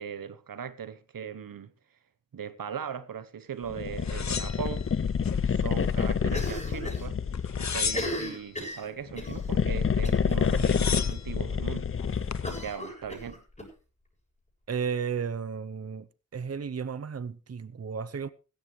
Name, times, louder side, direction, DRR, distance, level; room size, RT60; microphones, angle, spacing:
voice 1, 0.0-1.7 2.3-4.9 5.5-7.2 7.6-11.9 12.6-13.4, right 7 dB, 90° right, 1.0 m, -39 dB
sound 1, 3.7-8.2 9.1-12.7, left 6 dB, 40° left, 0.6 m, -28 dB
sound 2, 4.0-5.4 5.8-6.6 7.3-8.4 10.0-10.1 10.3-11.3 12.0-12.5, left 6 dB, 55° left, 1.0 m, -35 dB
Cough, 6.3-7.1 7.3-7.4 7.8-9.4 10.0-10.3 10.7-10.8 11.1-11.2 12.4-13.7, equal, 20° left, 7.6 m, -36 dB
voice 2, 14.7-16.1 16.3-18.3, right 6 dB, 45° right, 0.7 m, -33 dB
16.0 x 13.0 x 3.2 m
cardioid pair, 45°, 33 cm